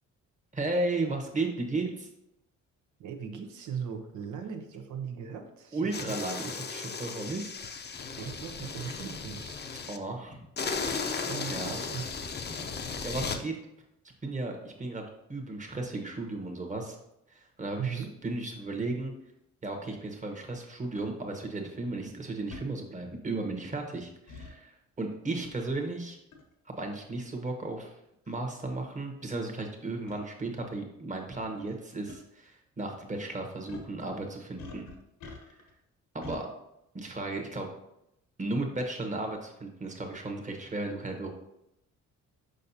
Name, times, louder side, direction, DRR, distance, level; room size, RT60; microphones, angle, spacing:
voice 1, 0.5-2.1 5.7-7.5 9.9-10.5 10.9-11.8 13.0-13.5 14.2-15.0 15.3-17.0 17.3-19.1 19.6-26.2 26.8-27.9 28.3-34.8 36.1-36.5 36.9-37.7 38.4-41.3, right 2 dB, 25° right, 2 dB, 1.3 m, -35 dB
voice 2, 3.0-6.2 8.2-9.6 11.3-12.1 17.8-18.1, right 7 dB, 75° right, 4 dB, 1.0 m, -38 dB
sound 1, 5.9-10.0 10.6-13.4, left 5 dB, 35° left, 0.6 m, -36 dB
sound 2, 21.0-21.1 22.5-22.7 24.3-24.5 26.3-26.5 27.3-27.4 28.3-28.4 28.6-28.8 30.1-30.2 31.5-31.8 32.1-32.2 33.7-33.9 34.6-35.7 36.2-36.4, left 3 dB, 80° left, 1.1 m, -45 dB
6.4 x 5.2 x 2.8 m, 0.83 s
cardioid pair, 90°, 30 cm